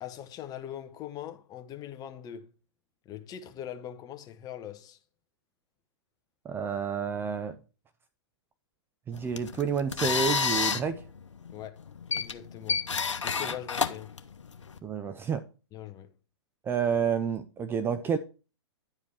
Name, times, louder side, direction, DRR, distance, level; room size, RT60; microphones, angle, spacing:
voice 1, 0.0-2.5 3.0-5.0 11.5-11.8 12.1-12.9 13.2-14.2 15.7-16.1, left 10 dB, 25° left, 1.0 m, -41 dB
voice 2, 6.4-7.6 9.1-11.0 14.8-15.4 16.6-18.2, right 6 dB, 15° right, 0.4 m, -29 dB
sound 1, 9.1-14.8, left 5 dB, 85° left, 0.8 m, -31 dB
10.0 x 5.1 x 4.7 m
hypercardioid pair, 120°, 15 cm